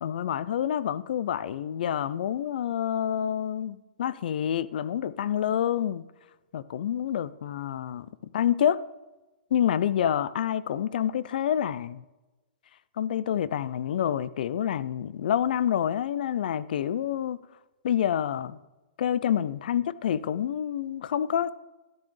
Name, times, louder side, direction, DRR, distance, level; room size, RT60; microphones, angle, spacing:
voice 1, 0.0-6.0 6.5-8.1 8.3-8.8 9.5-12.0 13.0-17.4 17.8-18.6 19.0-21.5, left 9 dB, 70° left, 0.4 m, -27 dB
13.5 x 8.7 x 3.2 m
hypercardioid pair, 135°, 5 cm